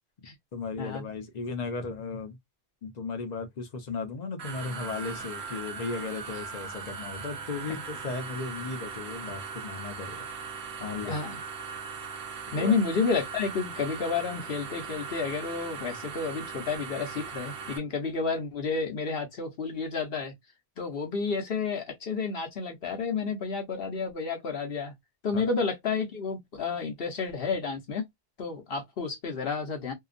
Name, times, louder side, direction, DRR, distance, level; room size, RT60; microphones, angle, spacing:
voice 1, 0.5-2.4 2.8-10.3 10.8-11.2 12.5-12.7 25.3-25.4, left 4 dB, 45° left, 0.7 m, -36 dB
sound 1, 4.4-17.8, right 5 dB, 90° right, 0.9 m, -39 dB
voice 2, 11.0-11.4 12.5-20.3 20.8-24.9 25.2-28.1 28.4-29.9, left 4 dB, 70° left, 1.0 m, -30 dB
2.7 x 2.3 x 2.4 m
omnidirectional pair, 1.0 m